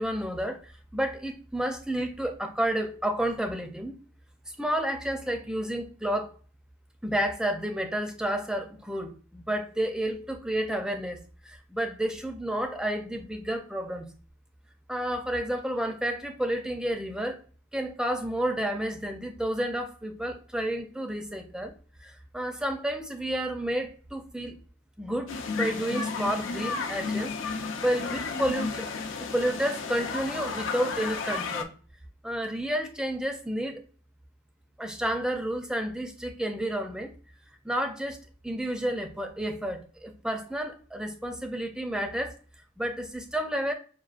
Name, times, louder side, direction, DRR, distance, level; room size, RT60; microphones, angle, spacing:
voice 1, 0.0-3.9 4.6-6.3 7.0-14.1 14.9-17.4 17.7-21.7 22.0-24.6 25.0-27.3 27.8-28.9 29.2-31.7 32.2-33.8 34.8-37.1 37.6-38.2 38.4-42.4 42.8-43.7, right 1 dB, 5° right, 5 dB, 0.4 m, -30 dB
sound 1, 25.3-31.6, left 4 dB, 75° left, 0.6 m, -32 dB
6.0 x 2.3 x 2.4 m, 0.39 s
head